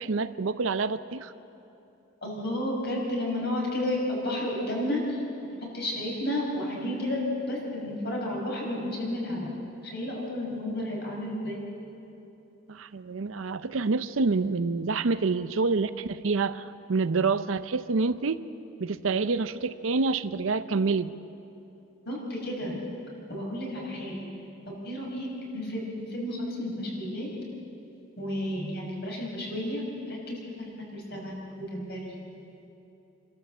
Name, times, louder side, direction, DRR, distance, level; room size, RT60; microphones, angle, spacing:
voice 1, 0.0-1.3 12.7-18.4 18.8-21.1, right 4 dB, 85° right, 13 dB, 0.6 m, -27 dB
voice 2, 2.2-5.2 5.7-9.5 9.9-11.6 22.1-22.8 23.3-24.2 24.8-27.4 28.2-32.1, left 1 dB, 55° left, -2 dB, 5.7 m, -32 dB
28.0 x 12.5 x 7.6 m, 2.9 s
head